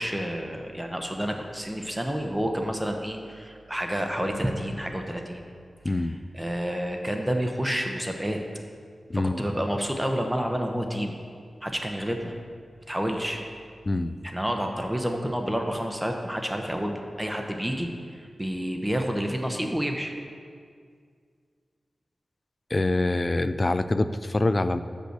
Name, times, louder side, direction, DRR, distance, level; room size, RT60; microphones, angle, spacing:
voice 1, 0.0-5.4 5.9-8.4 9.1-11.1 11.6-12.3 12.9-13.4 14.2-20.1, equal, 10° right, 3 dB, 0.8 m, -29 dB
voice 2, 5.8-6.2 9.1-9.5 13.9-14.2 22.7-24.8, left 2 dB, 35° left, 12 dB, 0.3 m, -25 dB
6.1 x 5.2 x 6.6 m, 2.1 s
wide cardioid pair, 70°, 0 cm